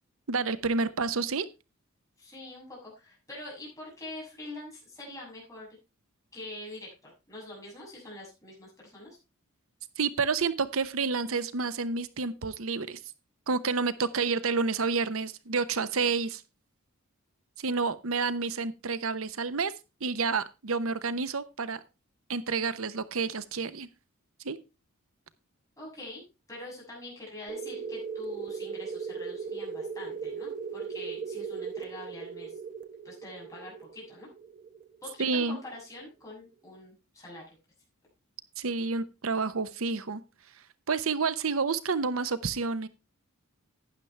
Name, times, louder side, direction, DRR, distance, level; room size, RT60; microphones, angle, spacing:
voice 1, 0.3-1.5 10.0-13.0 13.5-16.4 17.6-19.7 20.0-21.8 22.3-23.9 24.4-24.6 35.2-35.6 38.6-40.2 40.9-42.9, right 4 dB, 75° right, 14 dB, 0.8 m, -29 dB
voice 2, 2.2-5.7 6.3-9.2 25.8-26.2 26.5-32.6 33.0-34.3 35.0-37.4, left 2 dB, 15° left, -4 dB, 6.9 m, -44 dB
sound 1, 27.5-35.8, right 5 dB, 40° right, 1.1 m, -38 dB
12.0 x 10.0 x 3.3 m, 0.27 s
head